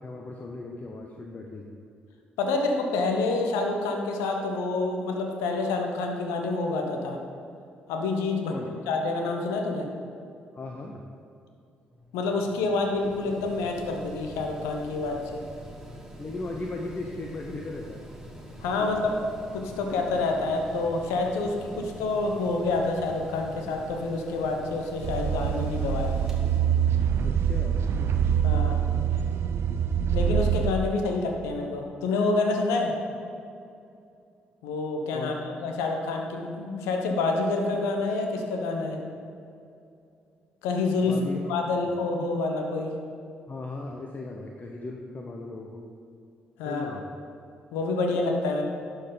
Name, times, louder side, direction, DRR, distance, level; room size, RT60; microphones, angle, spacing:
voice 1, 0.0-1.7 8.5-8.7 10.5-11.0 16.2-18.0 18.8-18.9 27.2-27.8 35.1-35.3 41.0-41.4 43.5-45.9 46.6-47.1, left 2 dB, 35° left, 1 dB, 0.8 m, -37 dB
voice 2, 2.4-7.2 7.9-8.5 8.9-9.9 12.1-15.4 18.6-19.2 19.5-26.1 28.4-28.8 30.1-32.9 34.6-39.0 40.6-41.2 41.5-42.9 46.6-47.0 47.7-48.6, left 3 dB, 75° left, 3 dB, 0.9 m, -27 dB
Mechanical fan, 11.9-28.2, equal, 10° right, 1.5 m, -45 dB
sound 1, 25.0-30.7, right 8 dB, 60° right, 0.5 m, -25 dB
11.0 x 4.6 x 3.9 m, 2.6 s
hypercardioid pair, 45°, 5 cm